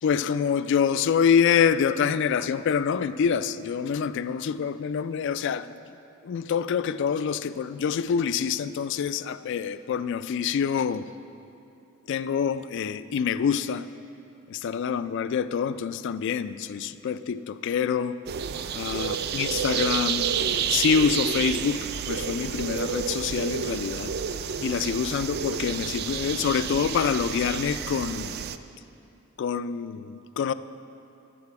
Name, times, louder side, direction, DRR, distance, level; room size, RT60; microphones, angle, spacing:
voice 1, 0.0-5.8 6.2-11.1 12.1-13.9 14.5-18.2 18.7-20.3 20.7-24.1 24.6-28.3 29.4-30.5, left 7 dB, 60° left, 14 dB, 0.3 m, -26 dB
sound 1, 18.3-28.6, right 7 dB, 50° right, 0.3 m, -30 dB
11.0 x 8.6 x 4.7 m, 2.7 s
head